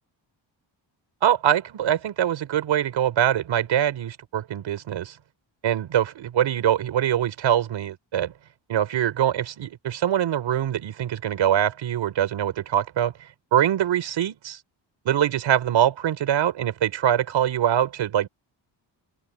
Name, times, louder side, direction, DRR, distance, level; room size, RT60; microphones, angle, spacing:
voice 1, 1.2-5.2 5.6-8.3 8.7-13.1 13.5-14.6 15.0-18.3, right 10 dB, 75° right, 4.7 m, -23 dB
open air
wide cardioid pair, 170°, 45 cm